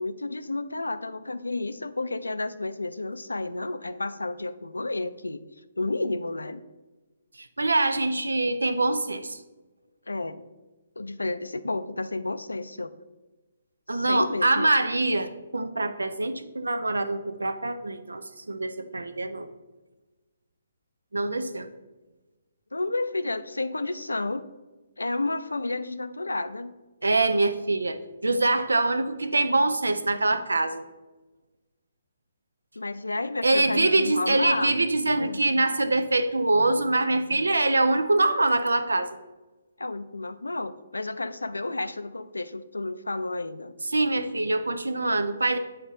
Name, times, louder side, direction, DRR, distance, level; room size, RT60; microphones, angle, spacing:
voice 1, 0.0-5.4 5.8-6.6 10.1-10.4 11.0-13.0 13.9-14.7 22.7-24.5 25.0-26.8 32.8-34.7 35.2-35.4 39.8-43.7, left 2 dB, 85° left, 12 dB, 0.4 m, -31 dB
voice 2, 7.4-9.4 13.9-19.5 21.1-21.7 27.0-28.0 28.2-30.8 33.4-39.1 43.9-45.6, right 2 dB, 80° right, 11 dB, 0.5 m, -24 dB
7.8 x 4.2 x 3.7 m, 1.2 s
figure-of-eight pair, 140°, 0 cm